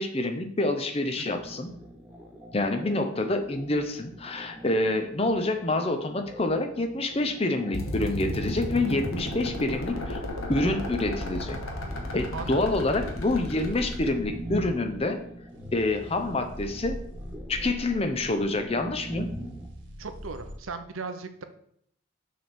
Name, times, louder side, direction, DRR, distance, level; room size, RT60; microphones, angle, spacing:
voice 1, 0.0-1.7 2.5-10.2 10.5-11.6 12.1-15.2 15.7-17.0 17.5-19.3, left 2 dB, 30° left, 7 dB, 0.6 m, -27 dB
sound 1, 1.3-19.7, right 1 dB, 5° right, 0.7 m, -43 dB
sound 2, 7.7-14.1, left 1 dB, 85° left, 1.2 m, -34 dB
sound 3, 12.3-20.6, equal, 60° right, 1.4 m, -41 dB
voice 2, 20.0-21.4, right 4 dB, 80° right, 8 dB, 0.7 m, -37 dB
6.6 x 3.4 x 6.0 m, 0.68 s
head